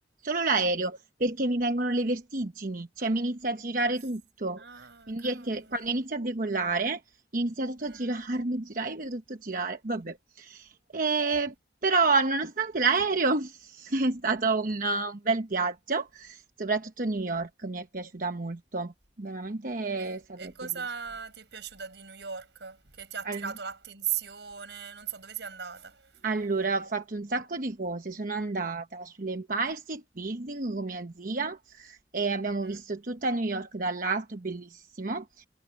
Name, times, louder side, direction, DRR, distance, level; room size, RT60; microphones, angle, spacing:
voice 1, 0.2-4.6 5.1-7.0 7.3-11.5 11.8-18.9 19.2-20.5 23.3-23.5 26.2-35.4, right 3 dB, 50° right, 1.1 m, -30 dB
voice 2, 4.6-5.8 7.8-8.1 20.0-26.1 32.4-32.8, right 8 dB, 80° right, 5.1 m, -38 dB
head